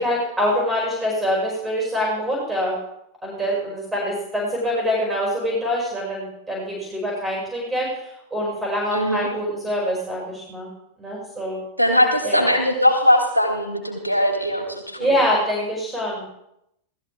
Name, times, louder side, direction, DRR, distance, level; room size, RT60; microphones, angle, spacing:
voice 1, 0.0-2.8 3.2-10.7 11.0-11.6 12.2-12.5 15.0-16.3, equal, 10° right, -3 dB, 6.6 m, -25 dB
voice 2, 8.9-9.3 11.8-15.1, equal, 90° right, 2 dB, 3.3 m, -20 dB
19.5 x 14.0 x 3.7 m, 0.80 s
figure-of-eight pair, 90°, 0 cm